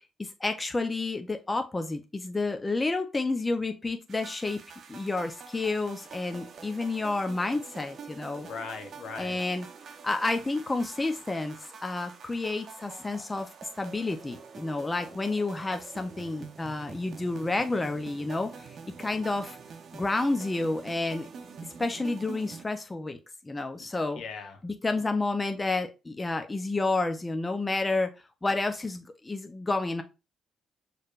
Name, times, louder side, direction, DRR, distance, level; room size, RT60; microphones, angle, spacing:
voice 1, 0.2-4.6 4.9-8.5 9.1-9.7 10.0-13.5 13.8-19.6 19.9-21.3 21.8-23.2 23.4-24.2 24.6-28.1 28.4-30.0, left 3 dB, 20° left, 0.7 m, -30 dB
sound 1, 4.1-22.7, right 6 dB, 55° right, 0.7 m, -46 dB
voice 2, 8.4-9.4 23.8-23.9 24.2-24.6, left 5 dB, 70° left, 1.0 m, -39 dB
6.4 x 3.3 x 2.5 m
cardioid pair, 90°, 0 cm